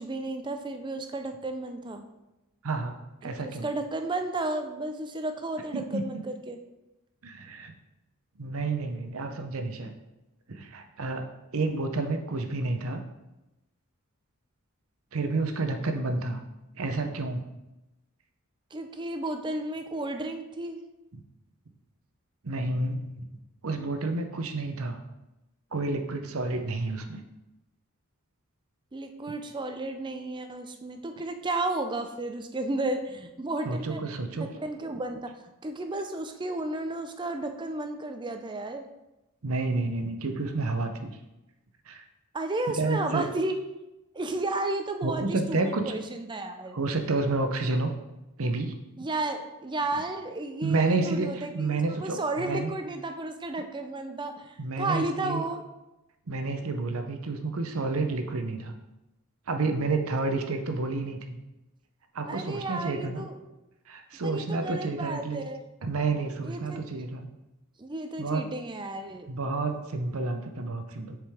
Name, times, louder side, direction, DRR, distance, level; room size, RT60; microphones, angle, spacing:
voice 1, 0.0-2.1 3.2-6.6 18.7-20.8 28.9-34.0 34.3-35.3 35.6-38.8 42.3-43.6 44.1-46.8 49.0-55.6 62.3-63.4 64.2-65.6 66.4-66.8 67.8-69.3, right 2 dB, 20° right, 6 dB, 0.5 m, -33 dB
voice 2, 2.6-3.7 5.7-6.0 7.2-7.7 8.4-9.9 10.5-13.0 15.1-16.4 16.8-17.5 21.1-21.2 22.4-23.3 23.6-25.0 25.7-27.2 33.7-34.5 39.4-41.1 41.9-42.0 42.7-43.3 45.0-45.8 46.7-47.9 48.4-48.8 50.6-52.7 54.6-55.4 56.3-58.7 59.5-61.4 62.1-63.2 63.9-65.4 65.8-67.3 68.2-68.4 69.3-71.2, right 3 dB, 70° right, 6 dB, 0.8 m, -30 dB
7.4 x 5.0 x 3.6 m, 0.97 s
head